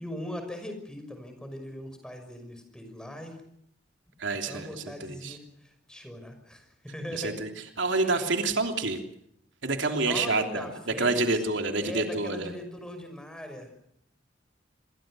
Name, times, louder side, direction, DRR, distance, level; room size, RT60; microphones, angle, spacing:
voice 1, 0.0-3.4 4.3-7.4 7.9-8.3 10.0-11.4 11.8-13.7, left 1 dB, 5° left, 6 dB, 5.8 m, -40 dB
voice 2, 4.2-4.7 5.0-5.4 7.2-7.5 7.8-9.0 9.6-10.7 11.0-12.5, right 3 dB, 90° right, 4 dB, 3.2 m, -27 dB
27.5 x 22.5 x 6.3 m, 0.75 s
head